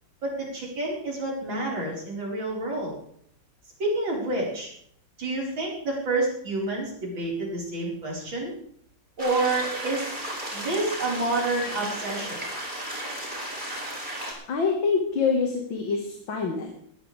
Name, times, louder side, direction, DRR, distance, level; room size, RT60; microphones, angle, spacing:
voice 1, 0.2-2.9 3.8-4.7 5.2-8.5 9.2-10.2 10.5-12.4, right 2 dB, 90° right, -4 dB, 5.5 m, -28 dB
sound 1, 9.2-14.3, right 1 dB, 25° right, 4.8 m, -34 dB
voice 2, 14.5-16.7, left 5 dB, 90° left, 1 dB, 2.6 m, -25 dB
20.5 x 14.0 x 3.4 m, 0.66 s
omnidirectional pair, 2.0 m